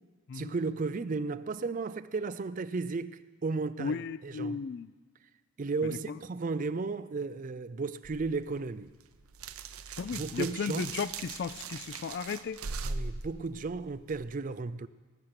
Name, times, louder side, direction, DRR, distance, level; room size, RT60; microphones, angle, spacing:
voice 1, 0.3-4.6 5.6-8.9 10.1-10.9 12.8-14.9, right 4 dB, 35° right, 0.4 m, -34 dB
voice 2, 3.8-4.9 6.1-6.2 10.0-12.6, left 5 dB, 50° left, 0.3 m, -35 dB
sound 1, 8.0-14.4, right 4 dB, 75° right, 0.7 m, -41 dB
19.5 x 6.6 x 5.9 m
head